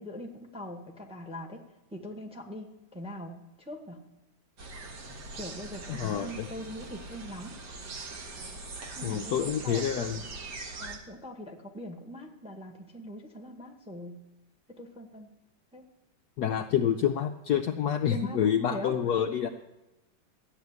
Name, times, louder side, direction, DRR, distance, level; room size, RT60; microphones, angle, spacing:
voice 1, 0.0-1.6 1.9-4.0 5.3-7.6 9.0-9.8 10.8-14.2 14.8-15.3 15.7-15.8 18.1-19.0, equal, 5° right, 2 dB, 1.1 m, -42 dB
sound 1, 4.6-11.0, right 3 dB, 60° right, 2.0 m, -41 dB
voice 2, 5.9-6.5 9.0-10.2 16.4-19.5, left 9 dB, 70° left, 6 dB, 1.0 m, -28 dB
13.0 x 6.8 x 9.5 m, 0.99 s
omnidirectional pair, 2.2 m